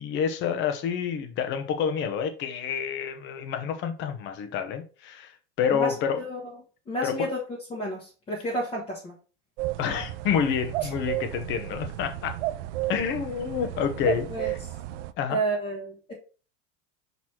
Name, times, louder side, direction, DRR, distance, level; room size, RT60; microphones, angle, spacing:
voice 1, 0.0-6.2 7.0-7.3 9.8-12.3 12.9-14.6 15.2-15.4, left 7 dB, 35° left, 1.0 m, -28 dB
voice 2, 5.7-6.5 6.9-9.1 10.8-10.9 14.3-14.7 15.3-16.1, right 1 dB, 15° left, 1.3 m, -31 dB
sound 1, 9.6-15.1, right 15 dB, 85° right, 0.7 m, -33 dB
6.2 x 4.1 x 4.4 m
supercardioid pair, 170°, 35 cm